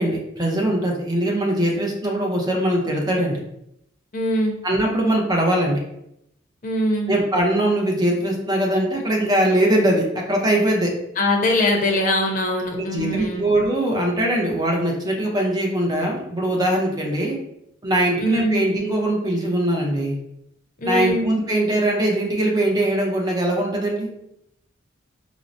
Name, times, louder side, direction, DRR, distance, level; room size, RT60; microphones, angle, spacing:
voice 1, 0.0-3.4 4.6-5.8 7.1-10.9 12.7-17.4 17.8-20.1 20.8-24.1, right 1 dB, 20° right, -1 dB, 0.6 m, -21 dB
voice 2, 4.1-4.6 6.6-7.1 11.2-13.4 18.2-18.6 20.8-21.2, left 1 dB, 45° left, 1 dB, 0.6 m, -22 dB
4.4 x 2.0 x 2.6 m, 0.79 s
head